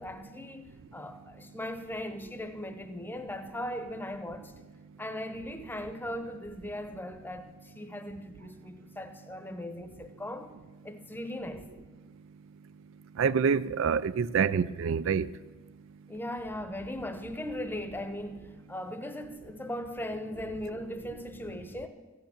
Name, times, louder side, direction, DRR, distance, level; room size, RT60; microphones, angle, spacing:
voice 1, 0.0-4.5 5.0-10.6 10.8-11.7 16.1-21.9, left 1 dB, 10° left, 0.9 m, -38 dB
voice 2, 13.2-15.3, right 6 dB, 65° right, 0.4 m, -26 dB
14.5 x 9.4 x 7.3 m
head